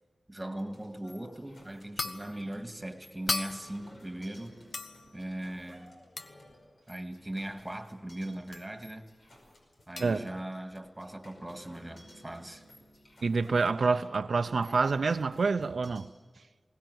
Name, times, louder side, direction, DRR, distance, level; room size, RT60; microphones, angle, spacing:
voice 1, 0.3-4.6 5.1-6.1 6.9-9.1 9.9-12.6, right 1 dB, 15° right, 2.0 m, -39 dB
sound 1, 0.6-16.0, equal, 75° left, 5.4 m, -56 dB
sound 2, 1.0-1.3 2.0-2.4 3.3-3.9 4.7-5.2 6.2-6.4 8.5-8.7 10.0-10.2, left 3 dB, 55° left, 1.0 m, -36 dB
voice 2, 13.2-16.1, right 4 dB, 80° right, 0.6 m, -27 dB
21.5 x 18.5 x 8.0 m
wide cardioid pair, 90°, 0 cm